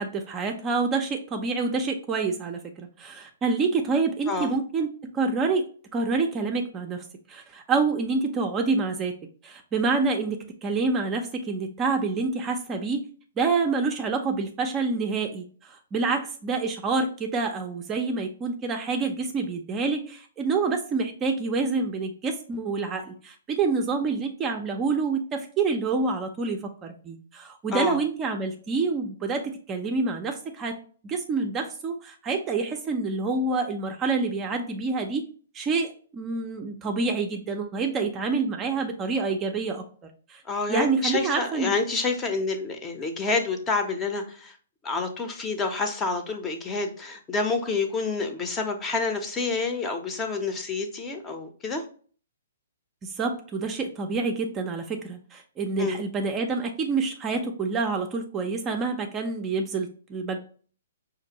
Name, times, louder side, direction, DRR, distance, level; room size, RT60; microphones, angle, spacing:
voice 1, 0.0-4.9 5.1-5.7 5.9-9.2 9.4-13.0 13.4-30.8 31.0-35.2 35.5-40.4 40.7-41.7 53.0-60.4, right 4 dB, 20° right, 4 dB, 0.5 m, -27 dB
voice 2, 40.4-44.6 44.8-51.8 55.8-56.0, left 4 dB, 20° left, 5 dB, 0.7 m, -28 dB
5.1 x 2.5 x 2.8 m, 0.43 s
hypercardioid pair, 130°, 0 cm